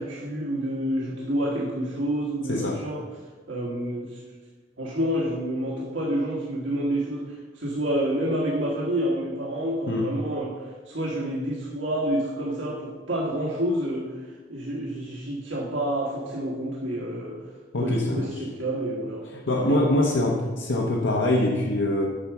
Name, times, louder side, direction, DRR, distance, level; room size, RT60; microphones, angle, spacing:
voice 1, 0.0-3.0 3.5-4.2 4.8-17.4 17.8-19.2 19.7-19.8, right 1 dB, 90° right, -4 dB, 1.5 m, -28 dB
voice 2, 2.5-2.8 9.9-10.1 17.7-18.4 19.2-22.1, left 1 dB, 85° left, -1 dB, 1.0 m, -24 dB
8.5 x 5.9 x 7.1 m, 1.4 s
head